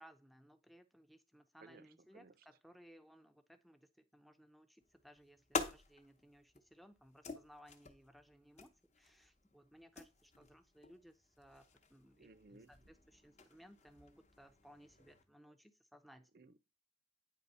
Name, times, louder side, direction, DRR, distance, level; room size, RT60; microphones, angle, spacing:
voice 1, 0.0-16.3, equal, ahead, 0.5 m, -62 dB
sound 1, 4.8-15.2, left 4 dB, 35° left, 0.8 m, -49 dB
voice 2, 12.2-12.7 16.3-16.6, right 3 dB, 50° right, 0.5 m, -59 dB
9.1 x 3.4 x 5.4 m
head